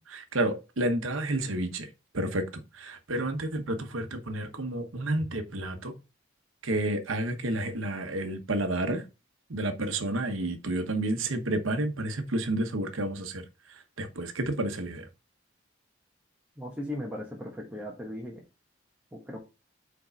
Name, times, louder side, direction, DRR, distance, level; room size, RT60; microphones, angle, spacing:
voice 1, 0.0-1.9 2.1-2.4 2.7-5.9 6.6-9.0 9.5-13.4 13.7-15.1, right 1 dB, 85° right, 1.0 m, -30 dB
voice 2, 16.6-18.4 19.1-19.4, left 1 dB, 5° right, 1.2 m, -37 dB
4.8 x 4.6 x 5.1 m
head